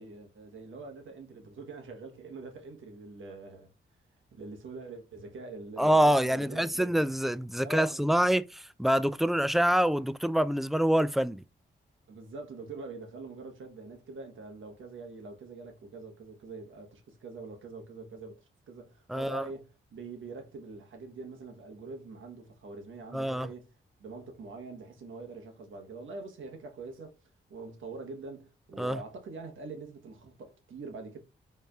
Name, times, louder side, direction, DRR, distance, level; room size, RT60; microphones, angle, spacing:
voice 1, 0.0-3.7 4.3-7.0 7.6-8.3 12.1-18.4 18.7-23.7 24.0-27.1 27.5-31.2, right 3 dB, 70° right, 1.2 m, -44 dB
voice 2, 5.8-11.4 19.1-19.5 23.1-23.5 28.8-29.0, right 1 dB, ahead, 0.3 m, -26 dB
4.3 x 3.3 x 2.4 m
cardioid pair, 55°, 21 cm